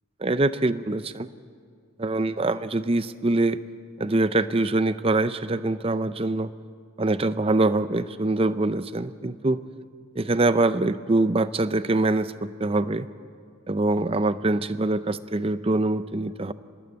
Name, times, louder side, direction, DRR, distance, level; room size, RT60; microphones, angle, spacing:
voice 1, 0.2-1.3 2.0-3.6 4.0-6.5 7.0-9.6 10.2-13.1 13.7-16.5, right 2 dB, 25° right, 13 dB, 0.5 m, -24 dB
25.5 x 20.5 x 8.0 m, 2.2 s
head